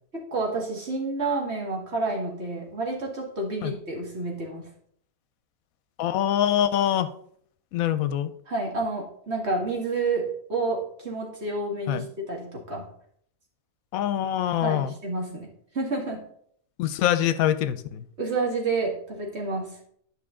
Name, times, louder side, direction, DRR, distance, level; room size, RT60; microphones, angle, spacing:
voice 1, 0.1-4.7 8.5-12.9 14.6-15.5 15.7-16.2 18.2-19.7, right 3 dB, 50° right, -1 dB, 2.2 m, -29 dB
voice 2, 6.0-7.1 7.7-8.3 11.9-12.1 13.9-14.9 16.8-18.1, left 11 dB, 85° left, 14 dB, 1.0 m, -24 dB
10.5 x 5.7 x 3.7 m, 0.64 s
omnidirectional pair, 1.5 m